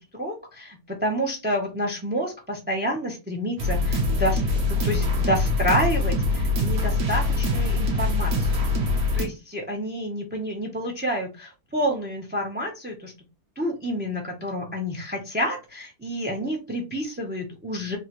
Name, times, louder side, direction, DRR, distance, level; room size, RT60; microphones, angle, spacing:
voice 1, 0.1-8.6 9.2-13.1 13.6-18.0, equal, 15° right, 2 dB, 0.4 m, -29 dB
sound 1, 3.6-9.3, left 2 dB, 75° right, 1.6 m, -23 dB
3.8 x 2.8 x 3.0 m, 0.28 s
omnidirectional pair, 1.6 m